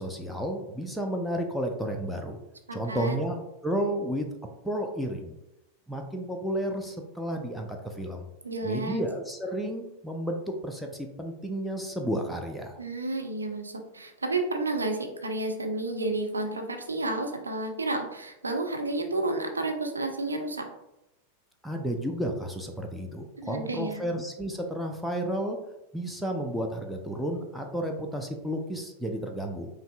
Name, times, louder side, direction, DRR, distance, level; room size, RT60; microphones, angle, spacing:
voice 1, 0.0-2.4 2.7-4.3 4.6-5.4 5.9-8.3 8.6-12.8 21.6-25.6 25.9-29.7, right 1 dB, ahead, 2 dB, 0.5 m, -32 dB
voice 2, 2.7-3.2 8.4-9.0 12.8-20.7 23.4-24.0, right 2 dB, 75° right, 4 dB, 0.5 m, -31 dB
5.2 x 2.5 x 2.2 m, 0.89 s
figure-of-eight pair, 90°, 0 cm